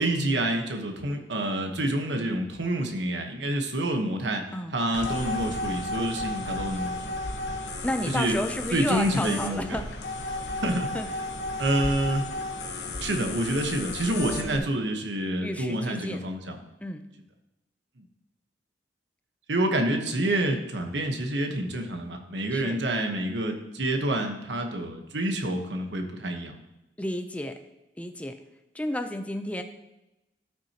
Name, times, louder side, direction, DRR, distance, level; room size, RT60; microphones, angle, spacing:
voice 1, 0.0-4.4 4.7-7.0 8.1-8.4 8.7-9.8 10.6-10.9 11.6-12.3 13.0-16.6 18.0-18.1 19.5-26.6, right 1 dB, 75° right, 4 dB, 1.2 m, -28 dB
sound 1, 4.9-14.6, left 2 dB, 65° left, 1.1 m, -33 dB
voice 2, 7.8-9.9 10.9-11.1 14.5-14.7 15.4-16.2 16.8-17.1 22.5-22.8 27.0-27.6 28.0-28.4 28.7-29.6, left 1 dB, 10° left, 6 dB, 0.6 m, -32 dB
14.0 x 6.1 x 2.9 m, 0.94 s
head